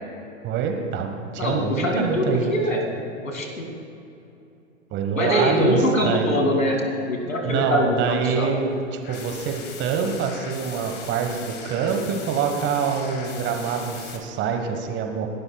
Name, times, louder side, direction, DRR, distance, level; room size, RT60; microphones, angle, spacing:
voice 1, 0.4-2.6 4.9-6.4 7.4-8.7 9.1-15.3, right 6 dB, 30° right, 4 dB, 1.4 m, -25 dB
voice 2, 1.4-2.8 3.2-3.7 5.2-6.8 7.1-8.5, equal, 75° left, 2 dB, 2.4 m, -23 dB
sound 1, 9.0-14.2, left 5 dB, 25° left, 1.6 m, -39 dB
28.5 x 12.0 x 2.3 m, 2.8 s
figure-of-eight pair, 100°, 40 cm